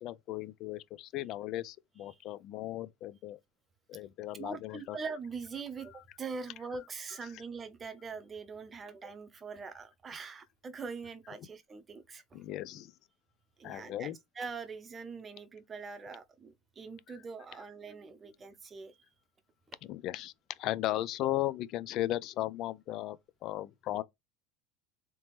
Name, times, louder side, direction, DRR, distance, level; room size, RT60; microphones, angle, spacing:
voice 1, 0.0-3.4 3.9-5.0 12.3-12.9 13.6-14.2 19.8-24.0, left 14 dB, 50° left, 0.4 m, -36 dB
voice 2, 4.4-12.4 13.6-19.0, right 5 dB, 25° right, 0.7 m, -43 dB
3.4 x 2.9 x 3.1 m
supercardioid pair, 125°, 0 cm